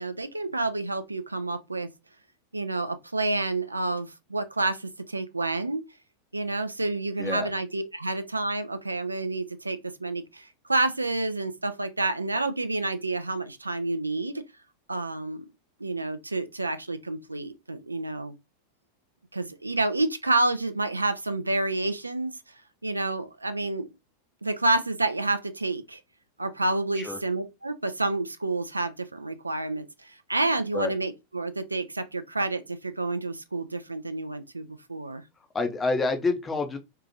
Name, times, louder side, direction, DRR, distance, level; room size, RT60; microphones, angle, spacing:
voice 1, 0.0-1.9 2.5-5.8 6.3-14.4 14.9-15.5 15.8-18.3 19.3-22.3 22.8-23.9 24.4-26.0 26.4-35.2, right 2 dB, 80° right, 0.3 m, -29 dB
voice 2, 7.2-7.5 27.0-27.2 30.7-30.9 35.5-36.8, left 3 dB, 15° left, 0.6 m, -27 dB
2.7 x 2.4 x 2.6 m
figure-of-eight pair, 90°, 0 cm